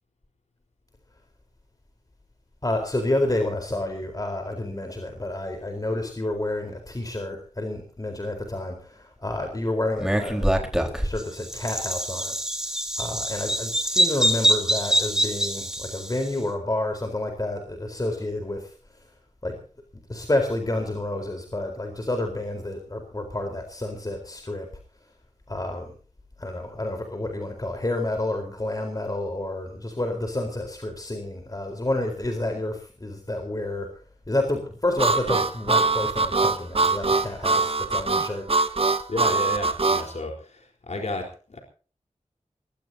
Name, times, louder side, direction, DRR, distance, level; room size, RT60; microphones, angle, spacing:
voice 1, 2.6-10.5 10.9-12.3 13.0-18.7 19.4-19.5 20.1-24.7 25.5-25.9 26.4-33.9 34.3-38.5, left 1 dB, 30° left, 4 dB, 4.3 m, -29 dB
Bird vocalization bird call bird song, 10.0-16.3, equal, 5° right, 4.4 m, -25 dB
Harmonica, 35.0-40.1, right 3 dB, 50° right, 1.5 m, -22 dB
voice 2, 39.1-41.6, left 2 dB, 65° left, 2 dB, 4.2 m, -32 dB
22.0 x 20.0 x 2.9 m, 0.40 s
wide cardioid pair, 80°, 12 cm